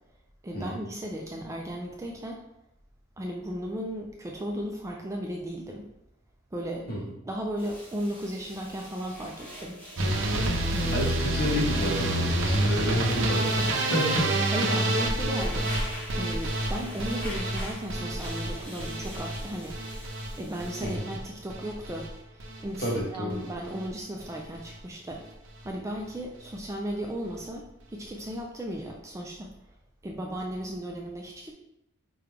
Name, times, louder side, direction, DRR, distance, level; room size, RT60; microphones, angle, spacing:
voice 1, 0.4-2.4 3.2-5.9 6.5-6.9 7.3-9.8 10.7-11.1 12.9-13.7 14.5-15.7 16.2-19.9 20.4-25.2 25.6-29.5 30.0-31.5, equal, 15° right, 0 dB, 0.3 m, -35 dB
bohren drilling inside pipe, 7.6-21.0, equal, 5° left, 1.0 m, -44 dB
sound 1, 10.0-22.1 22.4-23.0 23.3-23.9 24.2-24.4 24.8-24.9 25.1-25.2, right 1 dB, 65° right, 0.6 m, -29 dB
voice 2, 10.9-13.5 13.9-14.4 20.8-21.1 22.8-23.4, equal, 45° left, -3 dB, 1.2 m, -29 dB
4.9 x 2.3 x 3.3 m, 0.87 s
head